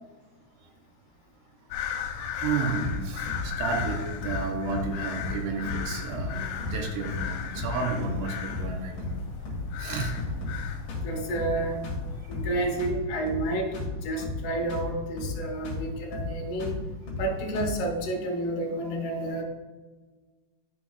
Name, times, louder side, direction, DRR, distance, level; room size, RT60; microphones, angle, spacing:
sound 1, 1.7-12.7, left 7 dB, 90° left, 3.1 m, -36 dB
voice 1, 2.3-9.1 9.8-10.1, right 4 dB, 85° right, 2 dB, 3.0 m, -32 dB
sound 2, 2.8-3.0 3.3-3.5 3.7-4.0 4.2-4.4 4.7-4.9 5.2-5.4 5.6-5.9 6.1-6.3 6.6-6.8 7.1-7.3 7.5-7.8 8.0-8.2 8.5-8.7 9.0-9.2 9.4-9.7 9.9-10.6 10.9-11.1 11.4-11.6 11.8-12.0 12.3-12.5 12.8-13.0 13.3-13.5 13.7-14.0 14.2-14.4 14.7-14.9 15.2-15.4 15.6-15.9 16.1-16.3 16.6-16.8 17.1-17.3 17.5-17.8, left 3 dB, 50° left, 2.6 m, -33 dB
voice 2, 11.0-11.8 12.3-13.8 14.0-16.8 17.2-19.4, right 2 dB, 70° left, 0 dB, 2.0 m, -30 dB
12.0 x 5.1 x 2.4 m, 1.3 s
omnidirectional pair, 5.1 m